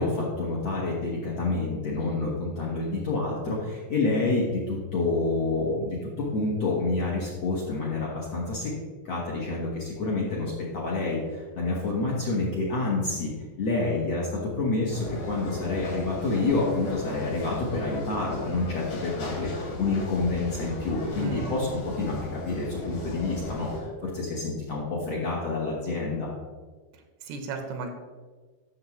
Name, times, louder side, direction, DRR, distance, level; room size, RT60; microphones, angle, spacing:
voice 1, 0.0-8.7 9.0-13.3 13.6-19.5 19.8-22.2 22.4-26.3, left 3 dB, 60° left, -5 dB, 1.8 m, -28 dB
sound 1, 14.9-23.8, left 1 dB, 90° left, 4.9 m, -36 dB
voice 2, 21.2-21.5 27.2-27.9, right 3 dB, 85° right, 5 dB, 2.9 m, -34 dB
13.5 x 6.4 x 3.1 m, 1.4 s
omnidirectional pair, 4.6 m